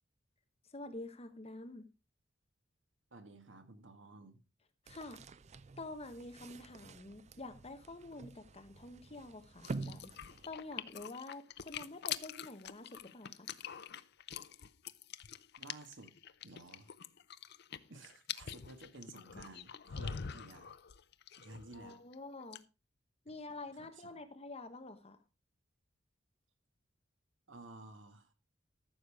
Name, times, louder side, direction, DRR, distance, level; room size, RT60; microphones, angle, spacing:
voice 1, 0.7-1.9 4.9-5.2 5.8-13.5 21.7-22.6 23.2-25.2, left 2 dB, 35° left, 1.2 m, -48 dB
voice 2, 3.1-4.4 15.6-16.1 16.4-16.9 17.9-20.7 21.4-22.0 23.3-23.4 23.7-24.2 27.5-28.3, right 2 dB, 70° right, 1.7 m, -54 dB
sound 1, 4.9-11.0, right 3 dB, 35° right, 0.5 m, -48 dB
sound 2, 9.6-22.1 22.4-22.6, left 8 dB, 60° left, 0.6 m, -45 dB
14.0 x 6.8 x 4.9 m
head